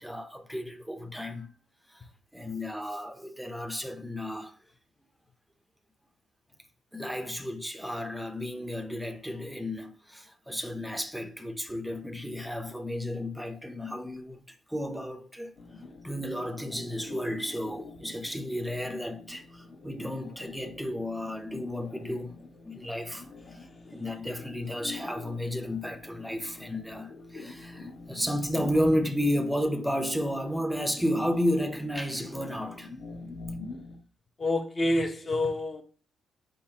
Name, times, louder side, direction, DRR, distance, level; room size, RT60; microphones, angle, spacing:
voice 1, 0.0-1.5 1.9-2.1 2.3-4.6 6.9-14.4 14.7-15.5 16.0-22.3 22.6-32.9, equal, ahead, 0.6 m, -32 dB
sound 1, 15.6-34.0, left 3 dB, 50° left, 1.1 m, -45 dB
voice 2, 34.4-35.8, left 1 dB, 30° left, 0.9 m, -27 dB
4.6 x 3.8 x 2.8 m
cardioid pair, 90°, 0 cm